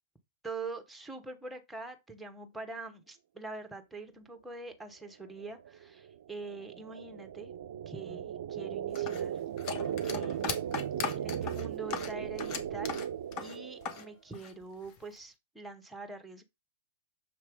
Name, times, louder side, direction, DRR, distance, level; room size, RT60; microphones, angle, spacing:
voice 1, 0.4-7.5 7.9-9.3 10.0-10.8 11.1-12.9 13.4-16.4, right 3 dB, 5° right, 1.3 m, -44 dB
sound 1, 5.2-14.1, right 9 dB, 65° right, 0.5 m, -37 dB
sound 2, 8.9-14.1 14.3-15.2, left 6 dB, 40° left, 1.3 m, -38 dB
7.0 x 3.1 x 5.1 m
figure-of-eight pair, 100°, 0 cm